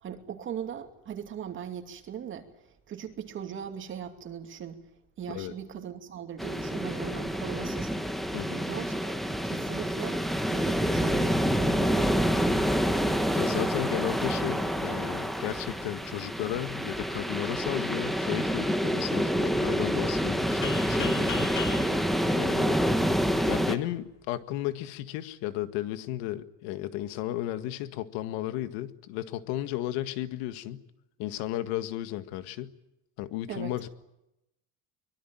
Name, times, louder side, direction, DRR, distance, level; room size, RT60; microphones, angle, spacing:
voice 1, 0.0-2.5 2.9-4.8 5.2-7.9 8.5-12.6 21.7-22.1 33.5-33.7, right 8 dB, 30° right, 5 dB, 2.6 m, -39 dB
sound 1, 6.4-23.8, equal, ahead, 1.2 m, -27 dB
voice 2, 8.3-8.6 13.3-21.5 22.3-22.8 23.5-30.8 31.2-32.8 33.2-33.9, left 14 dB, 65° left, 11 dB, 1.9 m, -34 dB
sound 2, 20.6-23.4, left 6 dB, 30° left, 5.8 m, -38 dB
24.0 x 22.5 x 9.1 m, 0.87 s
cardioid pair, 170°, 40 cm